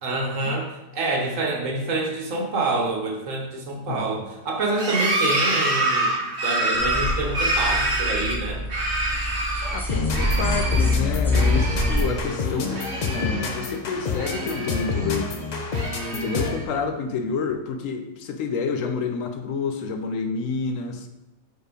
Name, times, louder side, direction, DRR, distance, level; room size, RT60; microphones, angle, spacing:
voice 1, 0.0-6.1 6.4-8.6, right 2 dB, 70° right, 0 dB, 1.4 m, -27 dB
sound 1, 4.7-9.8 10.1-10.9 11.3-12.3 12.5-13.7 14.1-15.1 15.6-16.6, right 1 dB, 45° right, 1.2 m, -27 dB
sound 2, 6.7-12.0, left 2 dB, ahead, 1.0 m, -25 dB
voice 2, 9.7-12.8 13.1-15.4 16.1-21.1, left 5 dB, 75° left, 6 dB, 1.0 m, -29 dB
sound 3, 9.9-16.7, left 4 dB, 50° left, 0.5 m, -29 dB
4.8 x 4.4 x 4.9 m, 1.0 s
omnidirectional pair, 1.4 m